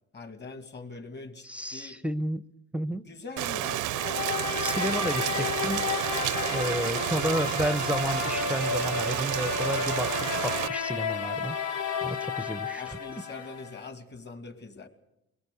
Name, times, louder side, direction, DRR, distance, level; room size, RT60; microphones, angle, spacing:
voice 1, 0.1-2.0 3.1-4.0 5.1-5.5 12.8-14.9, left 3 dB, 35° left, 7 dB, 2.3 m, -43 dB
voice 2, 1.4-2.4 2.7-3.0 4.6-11.6 12.0-13.0, right 1 dB, 5° right, 13 dB, 0.7 m, -32 dB
Rain, 3.4-10.7, right 14 dB, 90° right, 0.7 m, -31 dB
sound 1, 3.9-13.9, left 6 dB, 80° left, 1.3 m, -32 dB
22.0 x 18.0 x 6.9 m, 0.86 s
cardioid pair, 90°, 30 cm